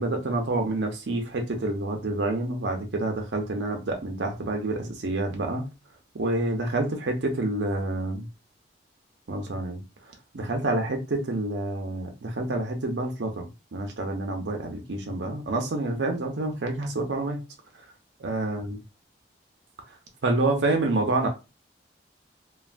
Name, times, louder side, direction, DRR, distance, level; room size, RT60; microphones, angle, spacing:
voice 1, 0.0-5.7 6.1-8.3 9.3-9.8 10.3-17.4 18.2-18.8 20.2-21.3, right 2 dB, 80° right, 0.6 m, -28 dB
3.2 x 2.2 x 2.4 m
head